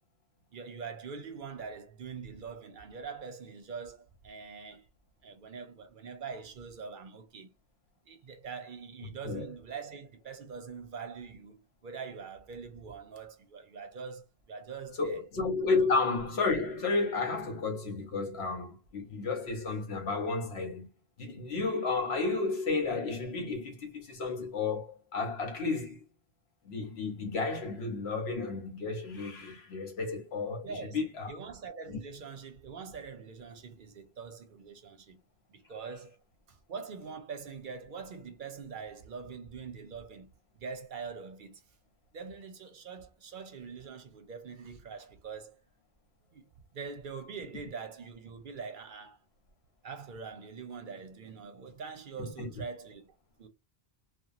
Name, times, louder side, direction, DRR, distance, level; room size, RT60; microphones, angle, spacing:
voice 1, 0.5-4.8 5.2-7.5 8.1-15.3 15.8-15.9 30.6-35.2 35.5-36.2 36.5-40.3 40.6-41.6 42.1-45.6 46.3-46.5 46.7-49.2 49.8-53.5, right 5 dB, 60° right, 0.7 m, -43 dB
voice 2, 15.0-20.9 21.2-26.0 26.6-31.3 31.9-32.0 52.2-52.5, left 3 dB, 80° left, 1.1 m, -32 dB
2.8 x 2.3 x 2.4 m
omnidirectional pair, 1.1 m